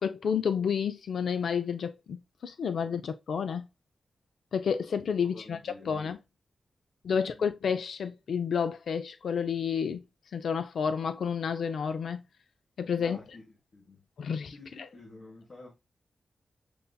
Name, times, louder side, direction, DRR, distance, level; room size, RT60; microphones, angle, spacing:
voice 1, 0.0-3.7 4.5-6.2 7.0-10.0 10.3-12.2 12.8-13.2 14.2-14.5, left 6 dB, 85° left, 0.4 m, -30 dB
voice 2, 5.2-6.1 7.1-7.5 13.0-14.0 14.5-15.7, left 2 dB, 45° left, 1.3 m, -50 dB
6.8 x 2.6 x 2.2 m
wide cardioid pair, 140°, 0 cm